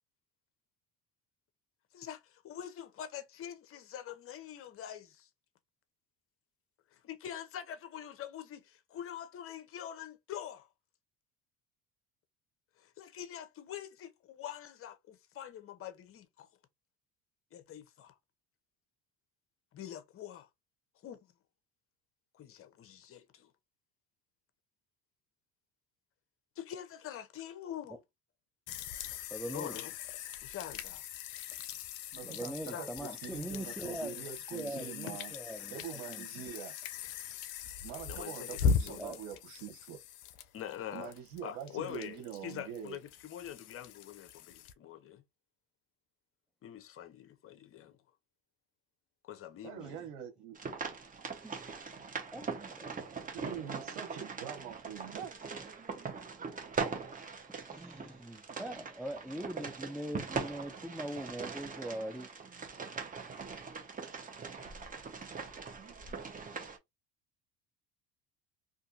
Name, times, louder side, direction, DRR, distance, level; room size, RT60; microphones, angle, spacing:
voice 1, 1.9-5.3 6.9-10.7 12.8-16.5 17.5-18.1 19.7-20.5 21.0-21.2 22.3-23.5 26.6-28.0 29.5-29.9 30.4-31.1 32.7-33.2 38.1-39.0 40.5-41.1 41.4-42.2 42.4-45.2 46.6-48.0 49.2-50.1, left 10 dB, 45° left, 0.7 m, -45 dB
sound 1, 28.7-44.7, left 6 dB, 75° left, 0.5 m, -39 dB
voice 2, 29.3-29.8 32.2-34.2 34.5-36.3 39.0-39.2 49.8-49.9 51.4-51.6 52.3-52.9 57.7-62.3, right 1 dB, 5° right, 0.4 m, -42 dB
voice 3, 32.1-35.3 35.7-36.7 37.8-40.0 40.9-43.0 49.6-50.6 53.3-55.3, right 9 dB, 85° right, 0.9 m, -44 dB
sound 2, 50.6-66.8, right 5 dB, 25° right, 0.9 m, -41 dB
2.6 x 2.5 x 2.5 m
supercardioid pair, 80°, 32 cm